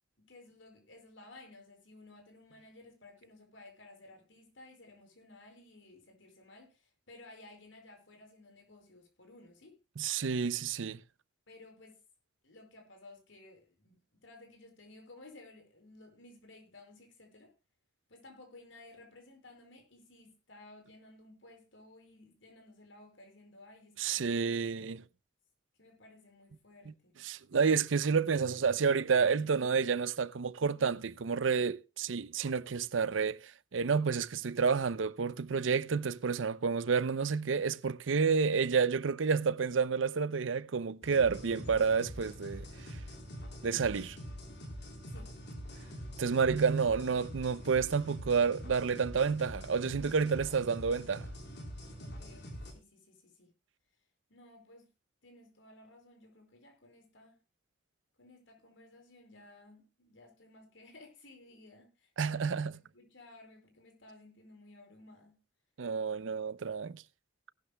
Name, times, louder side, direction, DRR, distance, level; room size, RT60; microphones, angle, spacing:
voice 1, 0.2-9.8 11.5-12.0 12.4-17.5 18.1-24.4 25.8-27.1 45.1-45.3 46.0-46.4 52.0-53.5 54.3-54.9 55.2-57.4 58.2-62.4 62.7-65.4, left 2 dB, 85° left, 4.8 m, -56 dB
voice 2, 10.0-11.0 24.0-25.0 27.2-42.7 43.6-44.2 46.2-51.3 62.2-62.7 65.8-67.0, right 5 dB, 85° right, 0.6 m, -30 dB
sound 1, 41.0-52.7, equal, 65° left, 3.7 m, -45 dB
18.5 x 12.0 x 2.2 m
head